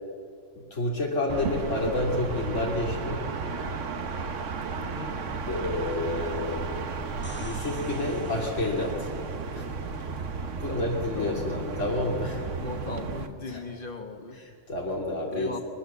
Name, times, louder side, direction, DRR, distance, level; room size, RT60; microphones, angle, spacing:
voice 1, 0.7-3.3 5.5-6.7 7.4-9.1 9.5-9.7 10.6-12.4 13.5-13.6 14.4-15.5, left 2 dB, 80° left, -2 dB, 3.0 m, -29 dB
sound 1, 1.3-13.3, right 4 dB, 80° right, 1.5 m, -33 dB
voice 2, 4.8-5.2 10.7-11.6 12.6-14.4 15.3-15.6, left 2 dB, 45° left, 5 dB, 1.8 m, -38 dB
sound 2, 7.0-9.0 12.7-12.8, left 1 dB, 10° left, 1.4 m, -46 dB
22.0 x 21.5 x 7.2 m, 2.4 s
omnidirectional pair, 1.3 m